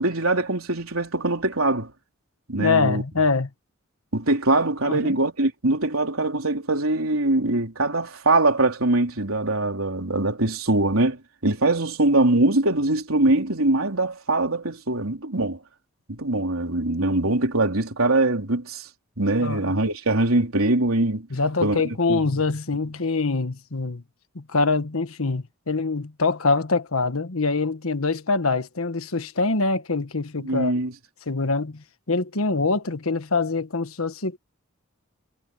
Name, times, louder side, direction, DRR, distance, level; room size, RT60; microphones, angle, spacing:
voice 1, 0.0-1.9 2.5-3.0 4.1-15.6 16.1-18.9 19.2-21.3 21.6-21.8 22.1-22.2 30.4-30.9, right 2 dB, 80° right, 4.1 m, -22 dB
voice 2, 2.6-3.5 4.9-5.2 19.4-19.7 21.3-24.0 24.3-30.7 31.3-34.4, left 3 dB, 80° left, 1.4 m, -24 dB
head